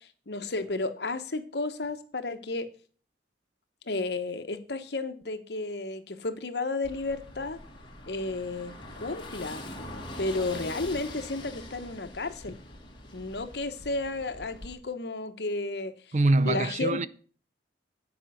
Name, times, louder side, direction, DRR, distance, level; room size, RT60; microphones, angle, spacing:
voice 1, 0.0-2.7 3.9-7.6 8.1-9.7 10.2-12.6 13.1-15.9 16.4-17.1, left 2 dB, 65° left, 1.0 m, -32 dB
Car passing by / Engine, 6.8-14.7, left 1 dB, 25° left, 2.0 m, -43 dB
voice 2, 16.1-17.1, right 2 dB, 40° right, 0.5 m, -24 dB
10.0 x 5.2 x 7.8 m
head